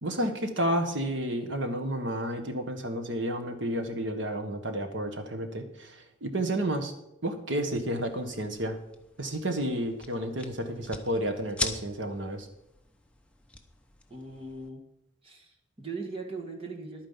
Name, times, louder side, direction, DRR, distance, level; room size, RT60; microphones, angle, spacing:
voice 1, 0.0-5.9 6.2-6.9 7.2-8.8 9.2-12.5, right 1 dB, 70° right, 6 dB, 1.5 m, -31 dB
sound 1, 8.0-14.7, left 2 dB, 5° left, 0.9 m, -41 dB
voice 2, 14.1-14.8 15.2-17.1, right 3 dB, 30° right, 1 dB, 1.9 m, -39 dB
11.0 x 9.0 x 5.7 m, 0.84 s
head